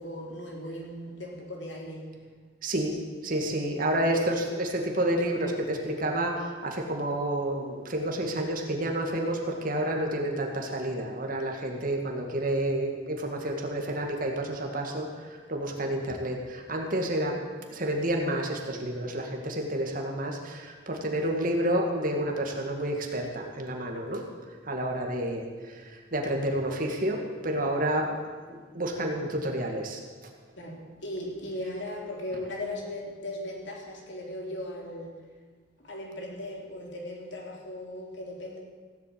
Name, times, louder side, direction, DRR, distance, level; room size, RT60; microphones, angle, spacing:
voice 1, 0.0-2.2 30.6-35.1 35.8-38.6, left 1 dB, 65° left, 0 dB, 3.3 m, -38 dB
voice 2, 2.6-2.9 3.2-17.4 17.7-24.2 24.6-28.1 28.5-30.0, right 1 dB, 45° right, 1 dB, 2.2 m, -30 dB
16.5 x 8.3 x 8.7 m, 1.5 s
head